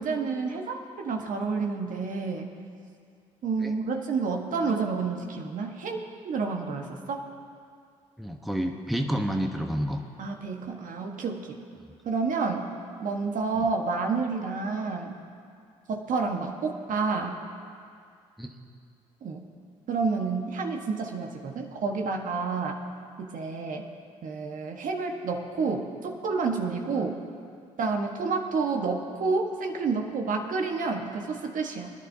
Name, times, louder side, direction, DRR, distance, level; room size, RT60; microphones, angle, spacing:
voice 1, 0.0-2.5 3.4-6.0 6.2-7.2 10.2-11.6 12.0-12.7 13.0-15.2 15.9-17.3 19.2-19.4 19.9-22.8 23.2-23.8 24.2-27.2 27.8-31.9, right 4 dB, 60° right, 2 dB, 1.4 m, -29 dB
voice 2, 8.2-10.0 18.4-18.5, equal, ahead, 3 dB, 1.1 m, -29 dB
21.5 x 11.0 x 2.8 m, 2.2 s
hypercardioid pair, 55°, 16 cm